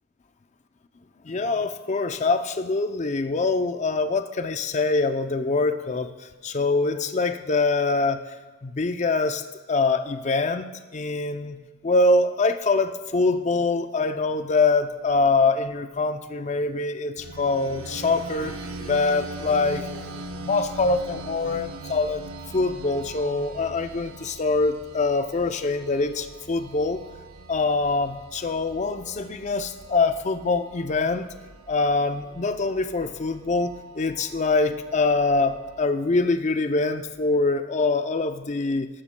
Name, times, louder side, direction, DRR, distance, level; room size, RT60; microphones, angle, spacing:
voice 1, 1.2-8.2 8.6-10.7 10.9-11.6 11.8-20.0 20.4-22.2 22.5-27.0 27.5-31.3 31.7-38.9, left 3 dB, 35° left, 9 dB, 0.5 m, -24 dB
sound 1, 17.2-35.8, right 2 dB, 90° right, 0.7 m, -41 dB
13.0 x 12.5 x 2.2 m, 1.2 s
head